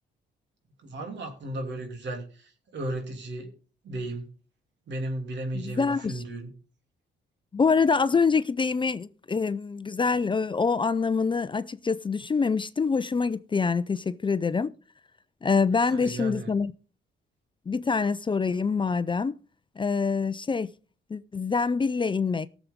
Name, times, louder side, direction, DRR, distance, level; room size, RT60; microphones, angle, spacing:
voice 1, 0.8-3.5 3.8-4.3 4.9-6.5 15.9-16.5, right 1 dB, 65° right, 3.1 m, -35 dB
voice 2, 5.5-6.2 7.5-14.7 15.4-16.7 17.7-19.4 19.8-20.7 21.1-22.5, left 5 dB, 25° left, 0.5 m, -25 dB
18.5 x 7.2 x 3.6 m
cardioid pair, 90°, 20 cm